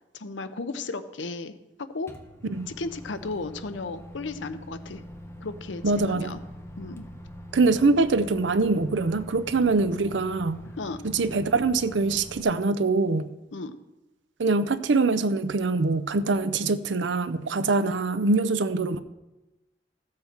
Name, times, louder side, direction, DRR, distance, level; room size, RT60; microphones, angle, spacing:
voice 1, 0.0-2.1 2.7-5.0 5.4-6.4 6.8-7.0 10.8-11.0 13.5-13.8, left 3 dB, 75° left, 11 dB, 0.7 m, -35 dB
Microwave oven, 2.1-12.4, equal, 15° left, 1.0 m, -43 dB
voice 2, 5.8-6.3 7.5-10.6 11.0-13.3 14.4-19.0, right 3 dB, 70° right, 13 dB, 0.6 m, -24 dB
14.0 x 7.6 x 4.5 m, 1.0 s
head